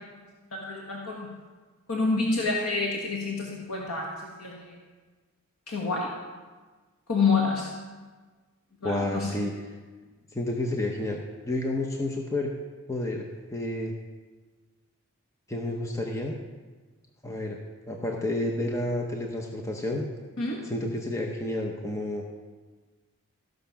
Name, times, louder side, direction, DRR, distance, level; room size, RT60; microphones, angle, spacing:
voice 1, 0.5-1.3 1.9-4.7 5.7-6.1 7.1-7.7 8.8-9.3 20.4-20.6, left 4 dB, 85° left, -2 dB, 1.5 m, -28 dB
voice 2, 8.8-9.5 10.3-12.5 12.9-13.9 15.5-16.3 17.2-17.6 17.9-20.1 20.6-22.2, left 1 dB, 15° left, 1 dB, 0.8 m, -30 dB
14.5 x 6.4 x 5.7 m, 1.4 s
head